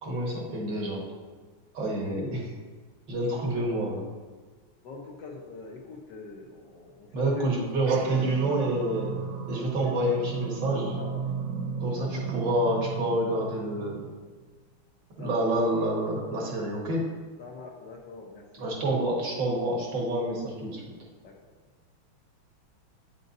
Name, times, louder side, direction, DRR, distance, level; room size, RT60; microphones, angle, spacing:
voice 1, 0.0-1.0 1.7-2.5 3.1-4.0 7.1-9.2 9.5-11.0 11.8-14.1 15.2-17.0 18.6-20.8, right 1 dB, 60° right, -3 dB, 1.9 m, -28 dB
voice 2, 4.8-7.5 7.9-8.3 9.8-9.9 11.0-11.2 12.0-12.3 15.2-15.9 17.4-18.8 21.2-21.3, left 3 dB, 70° left, 0 dB, 1.2 m, -44 dB
sound 1, 7.7-14.4, right 5 dB, 80° right, 1.4 m, -35 dB
8.7 x 5.2 x 2.6 m, 1.4 s
omnidirectional pair, 2.3 m